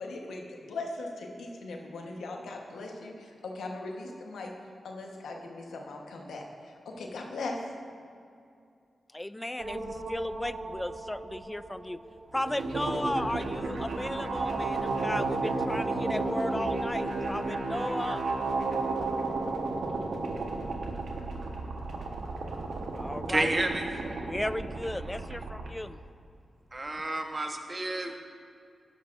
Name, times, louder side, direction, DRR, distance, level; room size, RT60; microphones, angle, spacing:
voice 1, 0.0-4.5 4.8-7.6, left 2 dB, 85° left, 1 dB, 1.1 m, -39 dB
voice 2, 9.1-12.0 12.3-18.3 22.9-23.5 24.3-26.0, left 1 dB, 15° left, 15 dB, 0.3 m, -35 dB
sound 1, 9.6-25.7, right 3 dB, 80° right, 1.1 m, -33 dB
voice 3, 23.3-23.9 26.7-28.2, right 2 dB, 35° right, 4 dB, 1.1 m, -30 dB
12.0 x 10.5 x 2.5 m, 2.4 s
cardioid pair, 45°, 0 cm